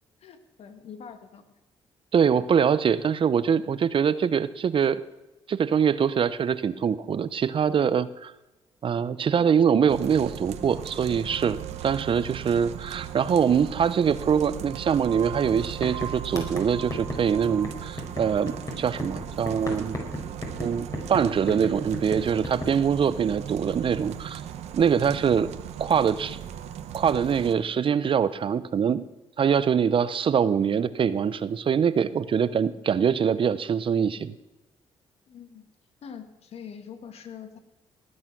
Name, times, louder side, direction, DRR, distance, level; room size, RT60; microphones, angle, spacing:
voice 1, 0.2-1.5 2.4-2.5 3.7-3.8 25.2-25.3 35.3-35.7 36.0-37.6, left 7 dB, 70° left, 9 dB, 1.7 m, -44 dB
voice 2, 2.1-5.0 5.5-8.3 8.8-20.0 20.6-24.4 24.7-25.5 25.8-26.4 26.9-29.0 29.4-34.4, right 7 dB, 50° right, 16 dB, 0.8 m, -24 dB
sound 1, 9.9-27.5, right 10 dB, 80° right, 1.0 m, -38 dB
sound 2, 15.2-15.3 15.5-22.7, left 1 dB, 30° left, 4.6 m, -35 dB
19.5 x 8.7 x 6.1 m, 1.0 s
supercardioid pair, 65°, 11 cm